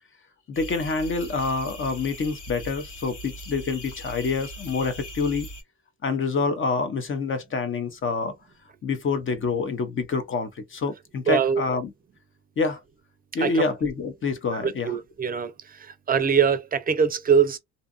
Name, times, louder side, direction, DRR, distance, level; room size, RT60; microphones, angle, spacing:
sound 1, 0.5-5.6, equal, 85° left, 1.5 m, -40 dB
voice 1, 0.5-5.5 6.0-8.3 8.8-11.9 12.6-12.8 13.3-15.0, left 4 dB, 40° left, 0.8 m, -27 dB
voice 2, 11.3-11.6 13.4-13.6 14.5-15.5 15.8-17.6, right 6 dB, 30° right, 0.5 m, -23 dB
2.7 x 2.4 x 2.4 m
cardioid pair, 90°, 30 cm